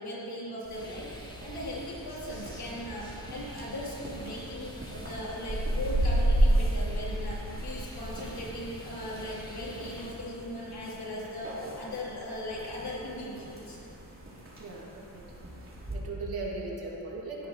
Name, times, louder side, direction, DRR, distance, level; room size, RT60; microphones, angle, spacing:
voice 1, 0.0-13.8, left 1 dB, 85° left, -7 dB, 3.7 m, -38 dB
sound 1, 0.6-15.9, right 1 dB, 35° right, 3.3 m, -33 dB
sound 2, 0.8-10.1, equal, 10° left, 1.5 m, -46 dB
voice 2, 14.6-15.2 15.9-17.5, right 3 dB, 75° right, -4 dB, 2.9 m, -38 dB
18.0 x 13.5 x 3.3 m, 2.9 s
wide cardioid pair, 90°, 37 cm